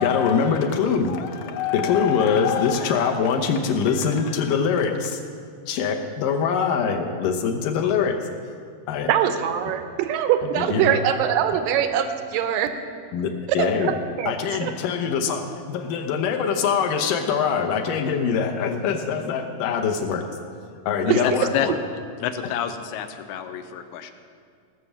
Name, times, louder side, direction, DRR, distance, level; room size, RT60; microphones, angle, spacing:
voice 1, 0.0-5.2 5.7-8.2 8.9-9.1 10.6-11.0 13.1-13.9 14.3-20.2 20.9-21.8, left 6 dB, 70° left, 4 dB, 2.2 m, -23 dB
voice 2, 9.1-12.7 13.6-14.3 14.6-14.7 21.1-21.2, right 9 dB, 80° right, 8 dB, 2.0 m, -23 dB
voice 3, 21.1-21.7 22.2-24.1, left 10 dB, 85° left, 8 dB, 2.6 m, -29 dB
19.0 x 6.8 x 7.2 m, 2.2 s
omnidirectional pair, 4.5 m